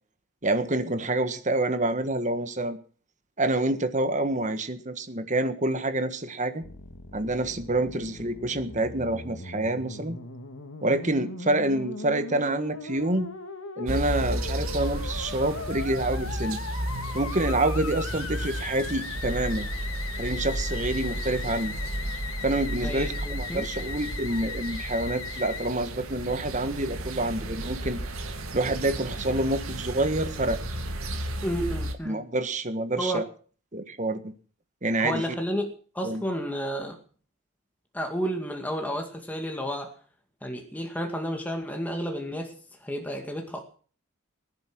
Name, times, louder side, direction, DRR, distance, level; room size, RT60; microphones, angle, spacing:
voice 1, 0.4-2.8 3.4-6.6 7.1-10.2 10.8-13.3 13.8-16.6 17.1-19.7 20.1-21.8 22.4-28.0 28.5-30.6 32.0-33.2 33.7-34.3 34.8-35.2 36.0-36.2, right 2 dB, 35° right, 10 dB, 1.5 m, -27 dB
Musical instrument, 6.6-25.7, left 4 dB, 80° left, 1.9 m, -38 dB
sound 1, 13.9-32.0, right 1 dB, 80° right, 2.5 m, -33 dB
voice 2, 22.8-23.8 31.4-32.2 33.0-33.2 35.0-37.0 37.9-39.9 40.4-42.5 42.8-43.6, equal, 10° left, 3 dB, 2.2 m, -31 dB
20.5 x 10.5 x 6.2 m, 0.42 s
head